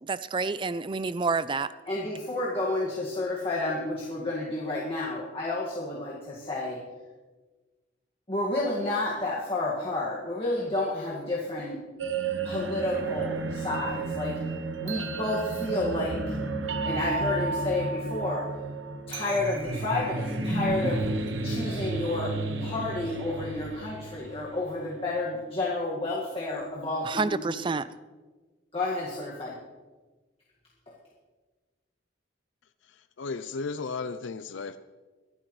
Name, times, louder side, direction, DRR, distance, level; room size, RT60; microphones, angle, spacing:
voice 1, 0.0-1.7 27.0-27.9, right 4 dB, 25° right, 0.4 m, -28 dB
voice 2, 1.9-6.8 8.3-11.8 12.4-14.4 14.8-16.4 16.8-18.4 19.1-21.0 21.4-22.3 22.6-27.5 28.7-29.6 30.9-31.0, left 2 dB, 30° left, 1.9 m, -30 dB
sound 1, 12.0-25.0, right 3 dB, 70° right, 1.1 m, -32 dB
Wild animals, 19.4-24.4, right 1 dB, 50° right, 0.9 m, -36 dB
voice 3, 32.8-34.8, left 4 dB, 75° left, 0.5 m, -35 dB
22.0 x 11.5 x 3.2 m
head